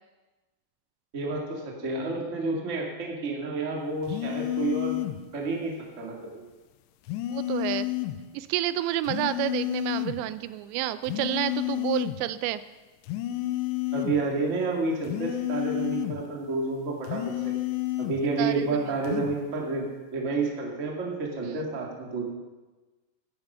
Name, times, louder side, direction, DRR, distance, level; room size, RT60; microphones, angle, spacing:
voice 1, 1.1-5.0 5.3-6.2 13.9-17.5 18.0-22.2, right 3 dB, 30° right, -1 dB, 1.3 m, -30 dB
sound 1, 4.1-5.2 7.1-8.2 9.1-10.2 11.1-12.2 13.0-14.2 15.1-16.2 17.0-18.2 19.0-19.4, left 15 dB, 85° left, 2.9 m, -30 dB
voice 2, 7.3-7.9 8.3-12.6 18.4-18.8 21.4-21.6, right 14 dB, 85° right, 14 dB, 2.8 m, -29 dB
15.0 x 10.5 x 5.6 m, 1.2 s
omnidirectional pair, 5.1 m